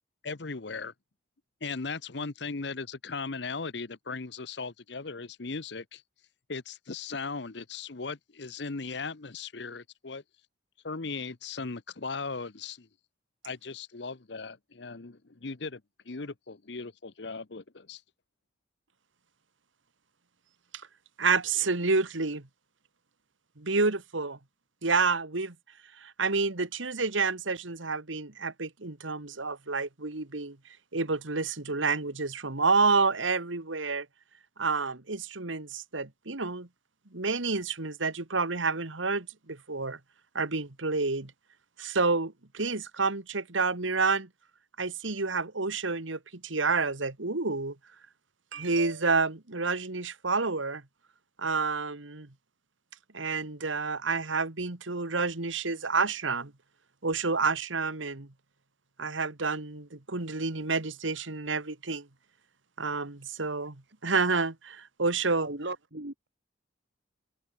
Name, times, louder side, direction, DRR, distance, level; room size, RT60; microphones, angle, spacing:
voice 1, 0.2-0.9 1.6-6.0 6.5-10.2 10.8-12.9 13.4-15.8 16.1-18.0, left 4 dB, 60° left, 0.9 m, -38 dB
voice 2, 21.2-22.5 23.6-24.4 24.8-25.6 26.0-30.6 30.9-34.1 34.6-36.7 37.1-40.0 40.3-41.3 41.8-44.3 44.8-47.8 48.5-50.8 51.4-52.3 53.1-56.5 57.0-58.3 59.0-62.1 62.8-65.5, right 4 dB, 85° right, 2.0 m, -29 dB
voice 3, 65.4-66.3, right 2 dB, 60° right, 2.6 m, -37 dB
head